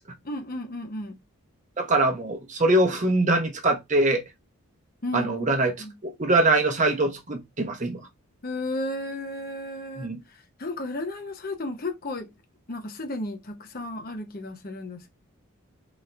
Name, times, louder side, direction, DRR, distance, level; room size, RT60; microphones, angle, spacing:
voice 1, 0.2-1.2 5.0-5.3 5.8-5.9 8.4-10.1 10.6-12.3 12.7-15.1, left 1 dB, 40° left, 0.8 m, -33 dB
voice 2, 1.8-4.2 5.1-5.7 6.2-8.0 10.0-10.2, right 2 dB, 35° right, 0.8 m, -23 dB
4.1 x 2.7 x 3.3 m
head